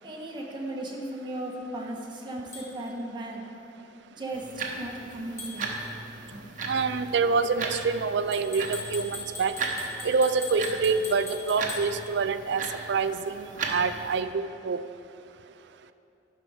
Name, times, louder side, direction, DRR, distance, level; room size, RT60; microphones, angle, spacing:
voice 1, 0.0-3.5 4.2-5.7 6.3-6.7, right 1 dB, 25° right, -1 dB, 1.3 m, -36 dB
sound 1, 2.5-2.7 5.4-5.6 8.3-11.9, left 3 dB, 15° left, 2.0 m, -39 dB
sound 2, 4.3-14.2, right 3 dB, 45° right, 1.1 m, -37 dB
voice 2, 6.7-9.5 10.0-12.6 12.9-14.8, right 4 dB, 65° right, 11 dB, 0.4 m, -26 dB
11.0 x 5.4 x 6.4 m, 2.8 s
head